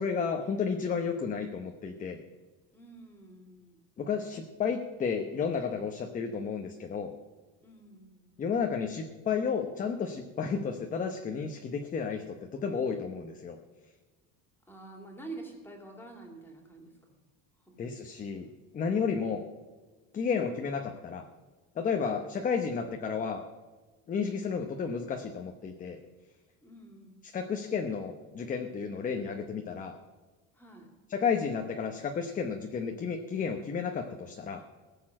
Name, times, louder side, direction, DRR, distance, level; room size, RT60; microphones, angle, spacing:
voice 1, 0.0-2.2 4.0-7.1 8.4-13.6 17.8-18.5 18.7-19.4 20.1-21.2 21.8-23.4 24.1-26.0 27.3-30.0 31.1-34.6, left 6 dB, 20° left, 4 dB, 0.8 m, -32 dB
voice 2, 2.7-3.9 7.6-8.4 14.7-17.2 17.6-17.8 18.4-18.5 26.6-27.3 30.5-30.9, right 2 dB, 5° left, 2 dB, 2.6 m, -48 dB
17.5 x 6.9 x 7.5 m, 1.3 s
cardioid pair, 165°, 36 cm